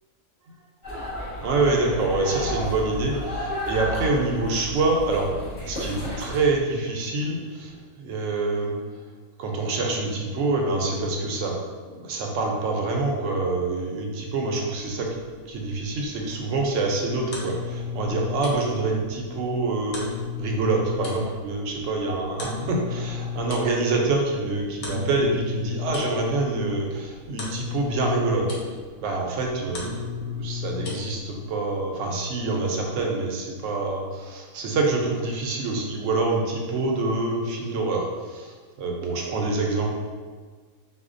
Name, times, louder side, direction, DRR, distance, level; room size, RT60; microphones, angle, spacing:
sound 1, 0.8-6.4, left 1 dB, 35° left, 1.2 m, -32 dB
voice 1, 1.4-8.7 9.4-11.6 11.9-15.1 15.5-28.5 29.0-39.9, right 3 dB, 70° right, 0 dB, 0.9 m, -26 dB
sound 2, 14.8-31.5, left 5 dB, 55° left, 0.8 m, -35 dB
4.2 x 2.3 x 2.5 m, 1.5 s
omnidirectional pair, 1.4 m